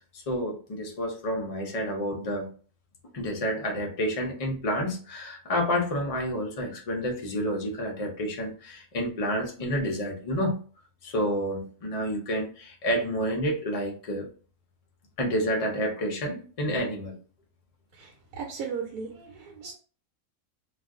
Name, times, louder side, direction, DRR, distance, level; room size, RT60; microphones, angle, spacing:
voice 1, 0.1-2.5 3.1-10.6 11.0-14.3 15.2-17.1, equal, 50° left, 0 dB, 0.4 m, -29 dB
voice 2, 17.9-19.7, right 6 dB, 90° right, 1 dB, 1.1 m, -37 dB
2.4 x 2.3 x 3.5 m, 0.40 s
omnidirectional pair, 1.6 m